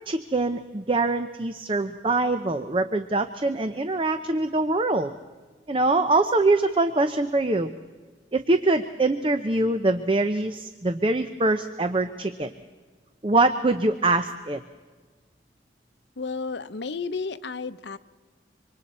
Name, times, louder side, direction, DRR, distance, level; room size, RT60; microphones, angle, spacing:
voice 1, 0.1-5.1 5.7-7.7 8.3-12.5 13.2-14.6, right 2 dB, 30° right, 9 dB, 0.6 m, -23 dB
voice 2, 16.2-18.0, left 4 dB, 80° left, 12 dB, 0.7 m, -32 dB
26.0 x 25.0 x 4.3 m, 1.4 s
head